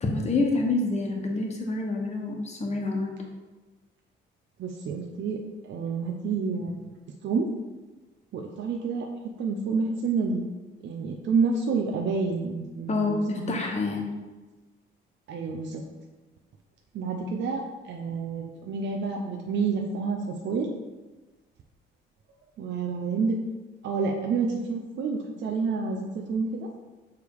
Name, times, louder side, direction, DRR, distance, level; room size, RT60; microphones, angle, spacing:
voice 1, 0.0-3.1 12.9-14.1, left 3 dB, 30° left, 1 dB, 1.2 m, -27 dB
voice 2, 4.6-6.9 7.2-7.5 8.3-9.1 9.4-10.4 10.8-13.6 15.3-15.8 16.9-20.7 22.6-23.4 23.8-26.7, right 4 dB, 60° right, 2 dB, 0.7 m, -29 dB
6.6 x 3.5 x 4.7 m, 1.2 s
cardioid pair, 120°, 21 cm